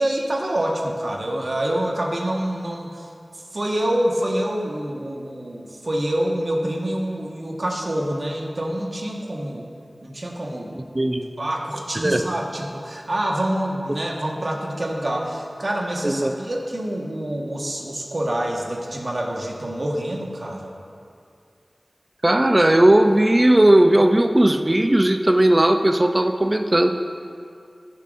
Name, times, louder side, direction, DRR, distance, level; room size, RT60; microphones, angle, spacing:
voice 1, 0.0-9.7 10.0-10.8 11.4-20.7, right 1 dB, 60° right, -1 dB, 1.4 m, -26 dB
voice 2, 10.9-11.3 11.9-12.2 16.0-16.3 22.2-26.9, right 1 dB, 30° right, 6 dB, 0.5 m, -17 dB
15.0 x 7.3 x 2.6 m, 2.4 s
wide cardioid pair, 45°, 0 cm